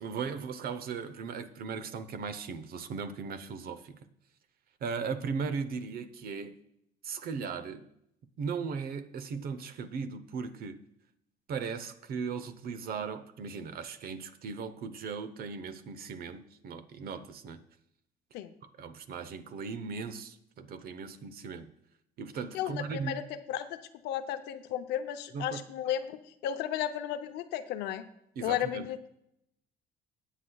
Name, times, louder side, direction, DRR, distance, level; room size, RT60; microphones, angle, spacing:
voice 1, 0.0-4.0 4.8-6.6 7.0-7.9 8.4-10.8 11.5-17.6 18.8-21.7 22.2-23.2 25.3-25.6 28.4-28.9, right 5 dB, 65° right, 10 dB, 0.9 m, -37 dB
voice 2, 22.5-23.8 24.0-28.0 28.4-29.1, left 11 dB, 90° left, 9 dB, 0.7 m, -34 dB
17.5 x 8.3 x 2.3 m, 0.76 s
cardioid pair, 110°, 17 cm